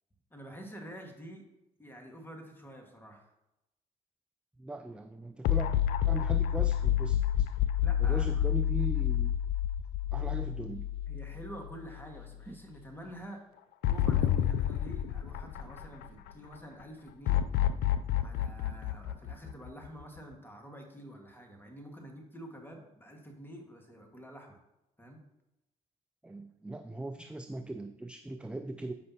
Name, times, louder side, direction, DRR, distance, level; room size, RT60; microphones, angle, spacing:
voice 1, 0.3-1.4 1.8-3.3 7.8-8.3 11.1-13.4 13.9-17.4 18.1-24.6 25.0-25.2, equal, 10° left, 2 dB, 1.7 m, -48 dB
voice 2, 4.6-5.7 6.1-7.5 8.0-9.3 10.1-10.9 12.5-12.6 26.2-28.9, right 2 dB, 5° right, 7 dB, 0.4 m, -39 dB
sound 1, 5.4-11.8 12.2-12.3 13.8-16.3 17.3-20.0, left 11 dB, 65° left, 0.4 m, -29 dB
7.7 x 5.2 x 2.8 m, 0.92 s
hypercardioid pair, 50°, 17 cm